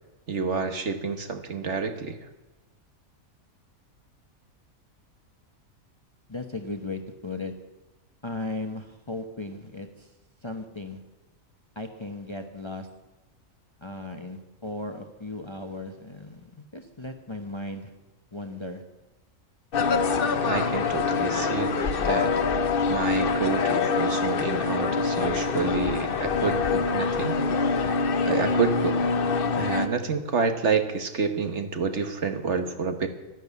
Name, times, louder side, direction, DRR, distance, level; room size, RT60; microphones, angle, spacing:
voice 1, 0.3-2.2 20.4-21.7 22.0-22.3 22.9-27.4 27.8-28.0 28.2-29.0 29.5-33.1, right 5 dB, 55° right, 7 dB, 1.5 m, -28 dB
voice 2, 6.3-7.5 8.2-10.1 10.4-11.0 11.8-12.9 13.8-17.9 18.3-18.8, left 2 dB, 20° left, 5 dB, 1.0 m, -36 dB
sound 1, 19.7-29.9, left 4 dB, 45° left, 0.9 m, -25 dB
12.5 x 11.0 x 8.3 m, 1.1 s
omnidirectional pair, 1.4 m